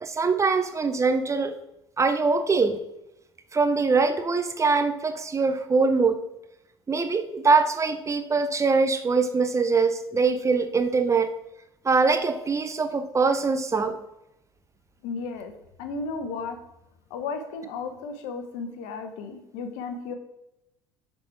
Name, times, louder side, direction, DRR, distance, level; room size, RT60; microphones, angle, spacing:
voice 1, 0.0-1.5 2.0-2.8 3.5-6.2 6.9-11.3 11.8-14.0, right 4 dB, 25° right, 8 dB, 0.7 m, -23 dB
voice 2, 15.0-15.5 15.8-16.6 17.1-20.1, left 4 dB, 65° left, 7 dB, 1.0 m, -34 dB
6.9 x 4.2 x 4.6 m, 0.87 s
hypercardioid pair, 70°, 13 cm